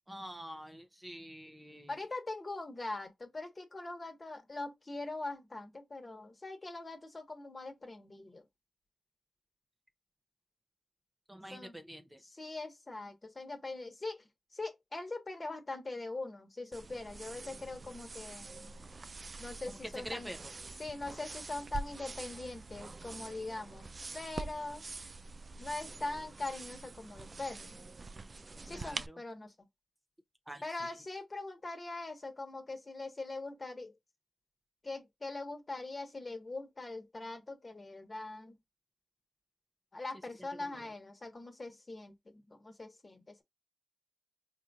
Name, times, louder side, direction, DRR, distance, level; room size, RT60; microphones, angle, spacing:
voice 1, 0.1-2.0 11.3-12.2 19.7-19.8 20.0-20.5 28.7-29.2 30.5-30.9 40.4-40.9, equal, 10° right, 0.7 m, -47 dB
voice 2, 1.9-8.4 11.5-11.7 12.3-14.2 14.5-18.7 19.4-20.3 20.8-23.9 24.1-24.8 25.6-27.7 28.6-29.7 30.6-33.9 34.8-38.6 39.9-43.4, left 2 dB, 35° left, 1.2 m, -42 dB
Combing wet hair comb, 16.7-29.1, right 3 dB, 45° right, 0.3 m, -46 dB
4.3 x 2.6 x 2.3 m
cardioid pair, 45°, 0 cm